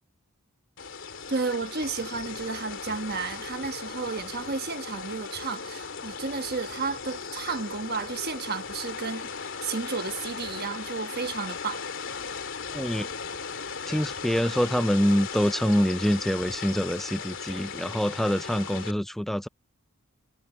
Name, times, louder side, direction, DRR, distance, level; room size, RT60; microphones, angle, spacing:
sound 1, 0.8-18.9, left 5 dB, 55° left, 3.1 m, -37 dB
voice 1, 1.3-11.8, right 4 dB, 45° right, 1.2 m, -32 dB
voice 2, 12.7-13.1 13.9-19.5, equal, ahead, 0.3 m, -25 dB
head